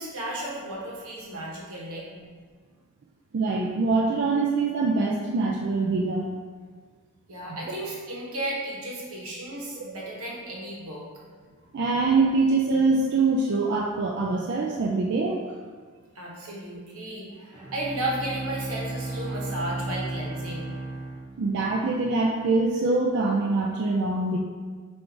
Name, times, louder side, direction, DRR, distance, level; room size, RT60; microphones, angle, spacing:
voice 1, 0.0-2.2 7.3-11.1 16.1-20.7, right 1 dB, 85° right, -3 dB, 1.0 m, -34 dB
voice 2, 3.3-6.2 11.7-15.4 21.4-24.4, right 3 dB, 50° right, -1 dB, 0.3 m, -24 dB
Bowed string instrument, 17.5-21.9, right 2 dB, 15° right, 0.8 m, -34 dB
4.5 x 2.5 x 3.8 m, 1.5 s
head